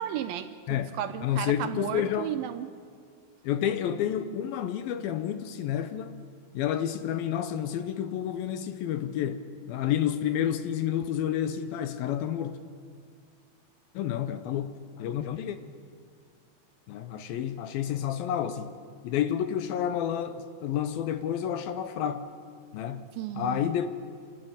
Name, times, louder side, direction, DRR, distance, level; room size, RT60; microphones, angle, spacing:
voice 1, 0.0-2.7 23.2-23.7, right 11 dB, 75° right, 2.4 m, -34 dB
voice 2, 0.7-2.3 3.4-6.2 6.5-12.6 13.9-15.6 16.9-18.8 19.0-22.3 22.7-23.1 23.3-23.9, left 10 dB, 75° left, 2.5 m, -30 dB
28.5 x 12.0 x 9.7 m
omnidirectional pair, 4.6 m